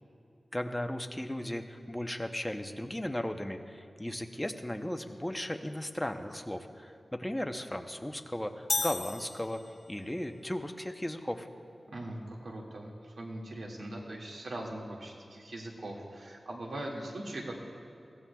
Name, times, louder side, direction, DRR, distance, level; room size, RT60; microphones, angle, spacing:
voice 1, 0.5-9.6 9.9-11.5, left 1 dB, 10° left, 5 dB, 0.7 m, -36 dB
sound 1, 8.7-10.1, left 3 dB, 45° left, 0.4 m, -34 dB
voice 2, 11.9-17.5, right 1 dB, 85° right, -2 dB, 2.0 m, -41 dB
21.5 x 15.5 x 2.3 m, 2.6 s
wide cardioid pair, 115°, 0 cm